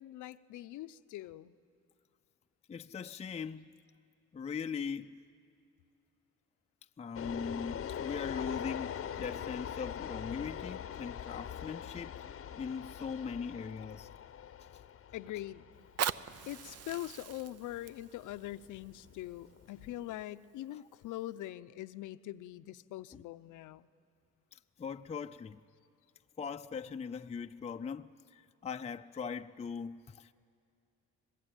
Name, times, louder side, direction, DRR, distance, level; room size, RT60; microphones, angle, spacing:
voice 1, 0.0-1.5 15.1-15.6 16.5-23.9, left 14 dB, 85° left, 0.7 m, -43 dB
voice 2, 2.7-3.7 4.3-5.2 7.0-14.1 20.7-20.8 23.1-23.2 24.5-25.6 26.4-30.3, left 6 dB, 20° left, 0.5 m, -40 dB
sound 1, 7.1-20.2, left 9 dB, 45° left, 0.8 m, -43 dB
Fire, 15.7-20.7 21.3-21.4, right 9 dB, 55° right, 0.7 m, -41 dB
25.5 x 20.5 x 9.0 m
cardioid pair, 90°, 30 cm